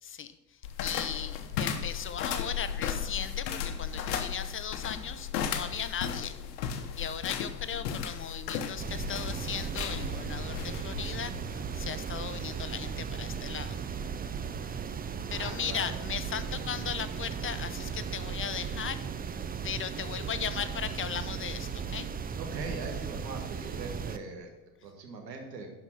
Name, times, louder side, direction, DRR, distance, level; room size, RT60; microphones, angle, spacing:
voice 1, 0.0-6.4 7.0-13.8 15.3-19.0 19.6-22.1, left 8 dB, 25° left, 12 dB, 0.7 m, -37 dB
sound 1, 0.6-11.9, left 8 dB, 75° left, 1.0 m, -35 dB
sound 2, 8.8-24.2, right 6 dB, 20° right, 0.6 m, -37 dB
sound 3, 9.2-21.4, right 8 dB, 40° right, 0.9 m, -48 dB
voice 2, 15.3-16.0 22.4-24.5 24.8-25.7, right 3 dB, 85° right, 3 dB, 1.6 m, -41 dB
11.5 x 5.0 x 5.9 m, 1.1 s
hypercardioid pair, 65°, 48 cm